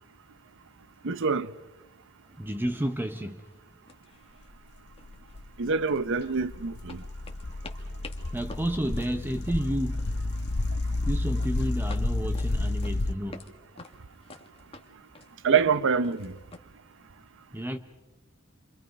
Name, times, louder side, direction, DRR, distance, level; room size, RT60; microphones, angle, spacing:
voice 1, 1.0-1.5 5.6-7.0 15.4-16.3, right 5 dB, 60° right, 0.7 m, -25 dB
sound 1, 2.3-2.4 2.8-3.1 3.4-3.6 3.9-4.7 5.0-6.5 6.9-10.4 10.6-11.0 11.4-13.5 13.8-16.6, left 3 dB, 25° left, 1.7 m, -49 dB
voice 2, 2.4-3.4 8.3-10.1 11.1-13.4 17.5-17.8, right 1 dB, 10° right, 0.7 m, -31 dB
sound 2, 4.6-13.1, left 2 dB, 50° left, 0.9 m, -31 dB
29.5 x 25.5 x 5.3 m
head